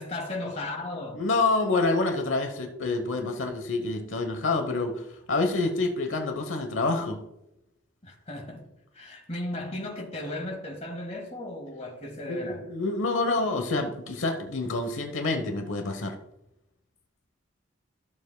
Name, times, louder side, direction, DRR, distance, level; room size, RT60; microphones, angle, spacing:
voice 1, 0.0-1.2 8.0-8.6 8.9-12.6, left 1 dB, 35° left, 1.8 m, -35 dB
voice 2, 1.1-7.2 12.3-16.2, left 3 dB, 75° left, 1.0 m, -27 dB
14.5 x 7.0 x 2.2 m
head